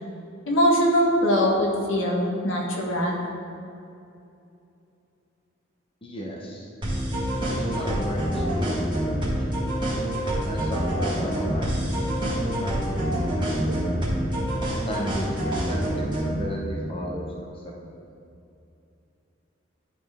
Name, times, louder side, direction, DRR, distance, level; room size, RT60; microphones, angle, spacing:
voice 1, 0.5-3.3, equal, 80° left, -2 dB, 1.3 m, -22 dB
voice 2, 6.0-6.7 7.3-9.3 10.5-14.1 14.9-17.3, equal, 30° left, -3 dB, 0.8 m, -34 dB
sound 1, 6.8-16.4, equal, 25° right, 1.6 m, -26 dB
11.0 x 4.3 x 3.5 m, 2.7 s
head